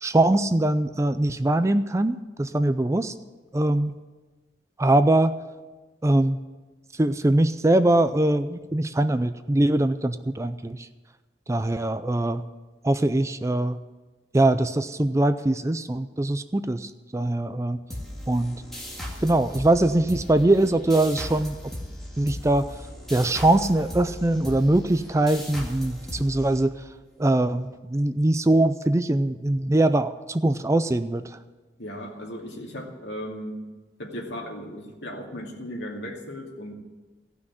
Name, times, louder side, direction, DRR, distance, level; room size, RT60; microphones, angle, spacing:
voice 1, 0.0-3.1 3.5-4.0 4.8-5.4 6.0-6.4 6.9-10.9 11.5-12.4 12.8-13.8 14.3-17.8 18.3-18.6 19.2-21.6 22.2-22.7 23.1-26.8 27.2-31.4, right 1 dB, 15° right, 11 dB, 0.4 m, -22 dB
sound 1, 17.9-27.1, left 1 dB, ahead, 2.2 m, -37 dB
voice 2, 31.8-33.6 34.0-36.7, equal, 75° left, 0 dB, 2.5 m, -36 dB
16.0 x 6.1 x 9.8 m, 1.2 s
head